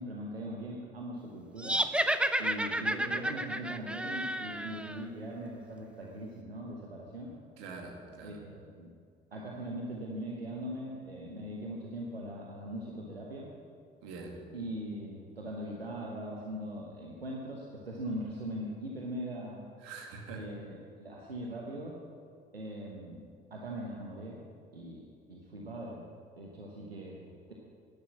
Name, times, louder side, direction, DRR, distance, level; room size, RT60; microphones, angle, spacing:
voice 1, 0.0-1.8 2.4-7.3 8.2-8.9 9.3-13.5 14.5-19.6 20.3-22.0 22.5-23.2 23.5-24.4 24.7-26.0 26.4-27.5, right 1 dB, 90° right, -2 dB, 1.1 m, -40 dB
sound 1, 1.6-5.0, right 1 dB, 5° right, 0.7 m, -31 dB
voice 2, 7.6-8.4 14.0-14.4 19.8-20.5, right 4 dB, 65° right, 1 dB, 2.3 m, -44 dB
12.0 x 11.0 x 7.3 m, 2.2 s
figure-of-eight pair, 50°, 29 cm